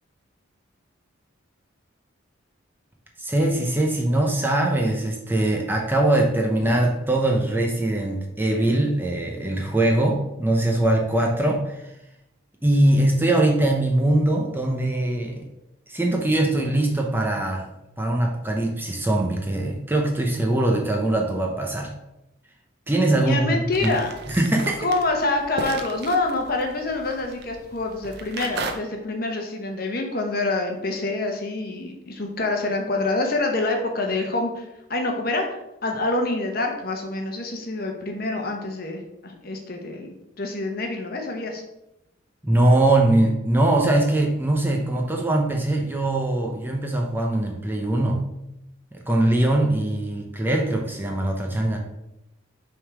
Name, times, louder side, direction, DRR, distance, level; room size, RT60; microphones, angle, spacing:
voice 1, 3.2-11.9 12.6-15.4 15.9-17.7 18.0-21.9 22.9-23.9 24.3-24.8 42.4-48.2 48.9-51.8, right 1 dB, 10° right, 1 dB, 0.6 m, -22 dB
voice 2, 23.2-24.1 24.8-41.6, left 2 dB, 45° left, 2 dB, 1.0 m, -26 dB
sound 1, 23.7-28.7, right 3 dB, 50° right, 0.6 m, -36 dB
5.9 x 3.7 x 4.8 m, 0.89 s
head